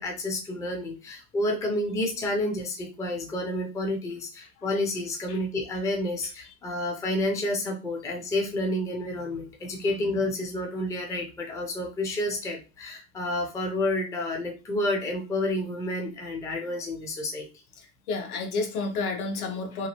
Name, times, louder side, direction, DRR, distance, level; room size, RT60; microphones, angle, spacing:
voice 1, 0.0-17.5, left 1 dB, 10° left, 2 dB, 0.4 m, -30 dB
voice 2, 17.8-19.9, left 3 dB, 85° left, 3 dB, 0.9 m, -31 dB
3.0 x 2.4 x 2.8 m, 0.32 s
hypercardioid pair, 115°, 43 cm